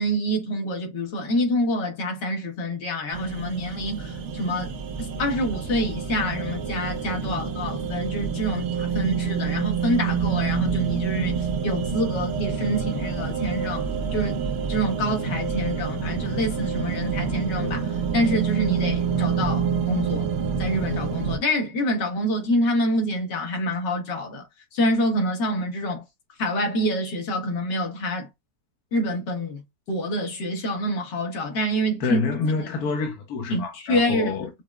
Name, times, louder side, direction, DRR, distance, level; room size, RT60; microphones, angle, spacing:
voice 1, 0.0-4.7 5.2-11.4 11.6-13.9 14.1-14.4 14.7-20.3 20.6-24.5 24.7-26.0 26.4-28.3 28.9-32.2 32.6-32.7 33.5-34.3, equal, 85° left, 1.9 m, -26 dB
sound 1, 3.1-21.4, right 6 dB, 55° right, 0.9 m, -27 dB
voice 2, 32.0-34.5, left 4 dB, 65° left, 1.4 m, -27 dB
5.8 x 2.0 x 2.3 m
omnidirectional pair, 1.9 m